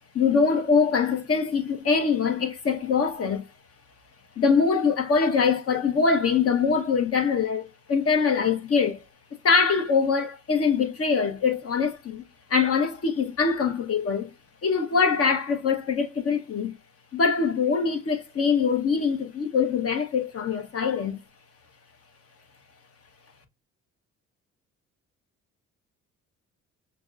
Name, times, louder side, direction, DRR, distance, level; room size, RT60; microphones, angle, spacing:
voice 1, 0.1-3.5 4.4-9.0 9.4-12.2 12.5-14.3 14.6-16.7 17.1-21.2, left 5 dB, 50° left, 1.1 m, -23 dB
6.0 x 2.2 x 2.5 m
cardioid pair, 90°, 30 cm